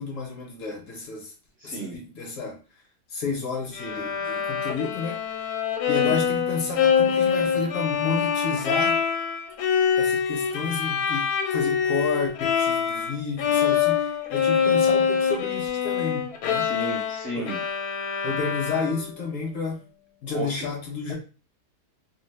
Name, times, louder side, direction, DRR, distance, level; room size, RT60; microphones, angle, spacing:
voice 1, 0.0-1.3 1.6-2.6 3.1-5.2 5.9-9.0 10.0-16.7 17.4-17.5 18.2-19.8 20.2-21.1, left 4 dB, 60° left, 1.0 m, -31 dB
voice 2, 1.6-2.0 6.0-6.2 14.6-14.7 16.6-17.6 20.3-20.6, right 2 dB, 60° right, 0.7 m, -33 dB
Bowed string instrument, 3.8-13.1 13.4-19.2, left 7 dB, 80° left, 1.1 m, -25 dB
2.7 x 2.1 x 3.2 m
omnidirectional pair, 1.7 m